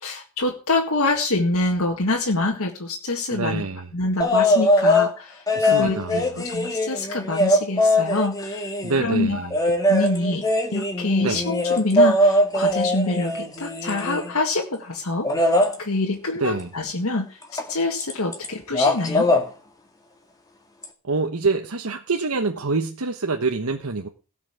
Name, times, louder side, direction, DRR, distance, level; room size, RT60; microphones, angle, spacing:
voice 1, 0.0-3.6 3.9-10.5 10.7-15.5 15.8-17.4 17.7-19.3, left 2 dB, 75° left, 0 dB, 1.9 m, -26 dB
voice 2, 3.3-3.9 5.6-6.2 8.8-9.5 11.2-11.4 16.4-16.7 21.0-24.1, right 3 dB, 80° right, 4 dB, 1.2 m, -26 dB
sound 1, 4.2-5.1 5.5-9.0 9.5-14.4 15.2-15.7 17.6-17.7 18.0-18.5 18.7-19.4 20.8-20.9, left 1 dB, 15° left, 2.1 m, -21 dB
17.5 x 5.8 x 7.2 m, 0.35 s
head